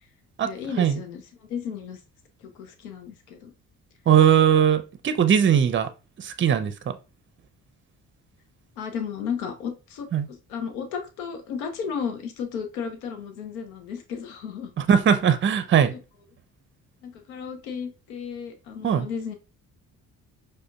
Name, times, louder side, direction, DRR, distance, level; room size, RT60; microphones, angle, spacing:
voice 1, 0.4-1.2 1.5-2.0 2.4-3.5 8.8-14.7 17.0-19.3, left 7 dB, 85° left, 0.7 m, -34 dB
voice 2, 4.1-5.9 6.2-7.0 10.1-10.3 14.8-15.9 18.8-19.1, right 8 dB, 30° right, 0.5 m, -20 dB
4.9 x 2.3 x 2.3 m
hypercardioid pair, 45°, 42 cm